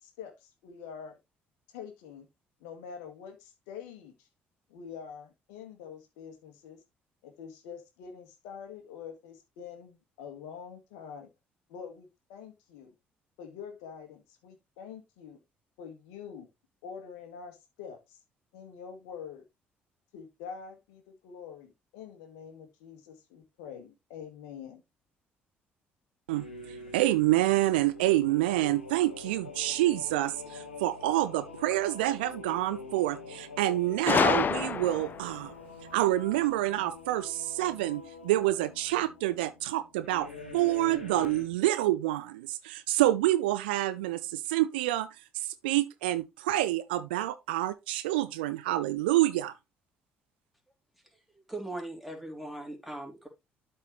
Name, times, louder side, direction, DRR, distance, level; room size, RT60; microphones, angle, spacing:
voice 1, 0.0-1.2 1.7-2.3 2.6-4.3 4.7-6.8 7.2-11.3 11.7-12.9 13.4-15.4 15.8-16.5 16.8-18.2 18.5-19.4 20.1-24.8, left 7 dB, 65° left, 1.8 m, -45 dB
sound 1, 26.3-41.4, left 4 dB, 85° left, 1.4 m, -46 dB
voice 2, 26.9-35.5 35.9-45.1 45.6-49.5, right 15 dB, 70° right, 0.6 m, -27 dB
Gunshot gunfire, 34.1-35.3, left 6 dB, 35° left, 0.6 m, -26 dB
voice 3, 51.5-53.3, right 1 dB, ahead, 3.3 m, -39 dB
12.5 x 4.4 x 3.2 m
figure-of-eight pair, 50°, 6 cm